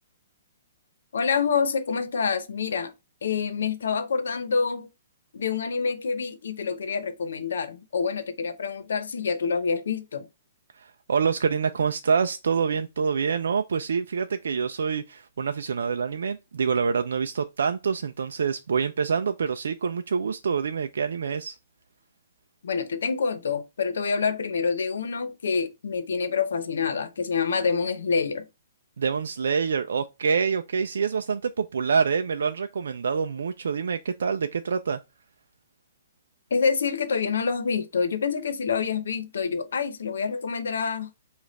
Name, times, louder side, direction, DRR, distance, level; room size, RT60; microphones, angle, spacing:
voice 1, 1.1-2.9 3.2-4.9 5.3-10.3 22.6-28.4 36.5-41.1, left 5 dB, 75° left, 0.9 m, -27 dB
voice 2, 10.7-21.6 29.0-35.0, right 6 dB, 85° right, 0.4 m, -26 dB
5.0 x 2.4 x 4.1 m
hypercardioid pair, 170°, 0 cm